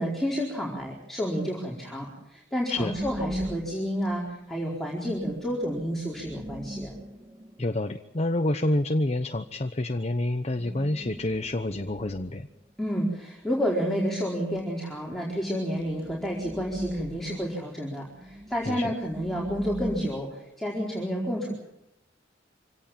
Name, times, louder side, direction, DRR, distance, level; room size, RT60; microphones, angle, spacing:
voice 1, 0.0-6.9 12.8-21.5, equal, ahead, -4 dB, 4.5 m, -30 dB
sound 1, 2.9-4.5 4.8-4.9 5.0-8.2 10.5-12.6 15.1-15.2 15.5-20.3, equal, 20° right, 1.5 m, -39 dB
voice 2, 7.6-12.5 18.6-18.9, left 1 dB, 35° left, 7 dB, 1.0 m, -28 dB
25.5 x 18.0 x 7.5 m, 0.83 s
head